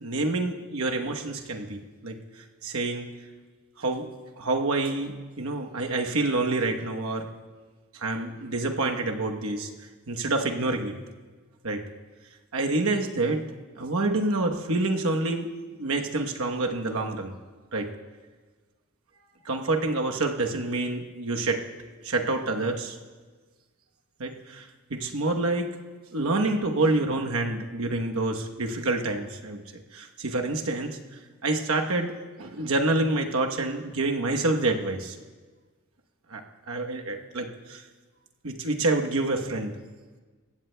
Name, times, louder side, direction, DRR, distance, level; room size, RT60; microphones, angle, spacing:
voice 1, 0.0-2.2 2.6-3.1 3.8-4.1 4.4-7.3 8.0-9.7 10.1-10.9 11.6-11.8 12.5-13.4 13.8-17.3 17.7-17.9 19.4-21.6 22.0-23.0 24.2-25.7 26.1-29.6 29.9-31.0 31.4-32.1 32.4-35.1 36.3-36.4 36.7-37.8 38.4-39.7, right 2 dB, 80° right, 3 dB, 1.1 m, -27 dB
20.5 x 16.0 x 2.2 m, 1.4 s
head